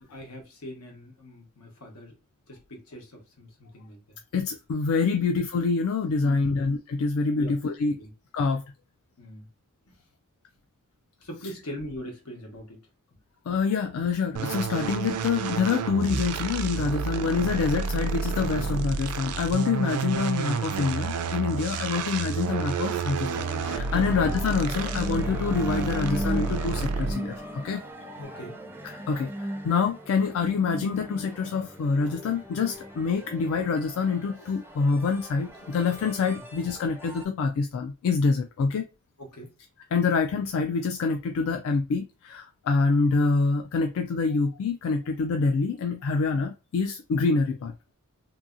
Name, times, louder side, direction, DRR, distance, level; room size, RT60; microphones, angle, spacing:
voice 1, 0.1-2.1 2.5-4.2 5.1-5.3 6.2-6.6 7.3-7.5 8.0-8.1 9.2-9.5 11.2-12.8 19.7-19.9 23.9-24.2 28.2-28.6 39.2-39.5, equal, 85° left, 1.2 m, -41 dB
voice 2, 4.3-8.0 8.3-8.6 13.5-27.8 28.8-38.9 39.9-48.0, left 4 dB, 65° left, 0.3 m, -26 dB
sound 1, 14.4-27.3, right 5 dB, 85° right, 0.4 m, -30 dB
sound 2, 23.3-37.2, equal, 10° right, 0.4 m, -38 dB
2.7 x 2.7 x 2.4 m
head